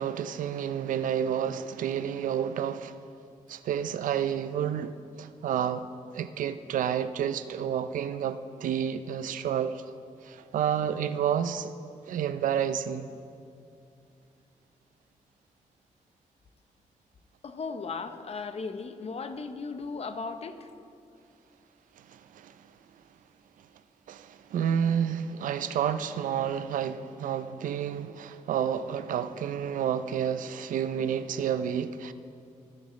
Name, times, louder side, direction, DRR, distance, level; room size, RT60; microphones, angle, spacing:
voice 1, 0.0-3.0 3.5-5.9 6.1-9.8 10.2-11.7 12.1-13.1 22.0-22.5 24.1-32.1, right 8 dB, 90° right, 0.5 m, -30 dB
voice 2, 17.4-20.7, left 4 dB, 50° left, 0.8 m, -36 dB
20.0 x 10.0 x 3.2 m
cardioid pair, 85°, 13 cm